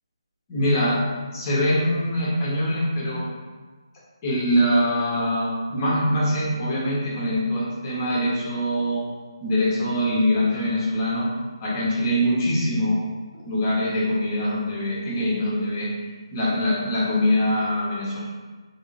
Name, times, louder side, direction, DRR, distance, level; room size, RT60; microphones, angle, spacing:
voice 1, 0.5-1.0 1.3-3.3 4.2-9.0 9.4-11.3 11.6-13.0 13.4-15.9 16.3-18.2, equal, 25° left, -7 dB, 1.3 m, -23 dB
3.6 x 2.8 x 4.1 m, 1.3 s
figure-of-eight pair, 155°, 3 cm